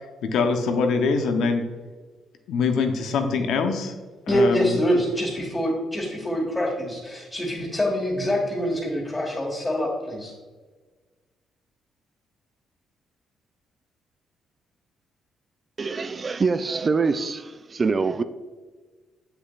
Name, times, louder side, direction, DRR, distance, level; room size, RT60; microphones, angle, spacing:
voice 1, 0.2-1.6 2.5-3.9 4.3-4.8, left 4 dB, 80° left, 0.8 m, -23 dB
voice 2, 4.3-10.3, equal, 15° left, 1.6 m, -25 dB
voice 3, 15.8-18.2, right 4 dB, 35° right, 0.3 m, -24 dB
7.6 x 6.8 x 2.4 m
cardioid pair, 90°, 0 cm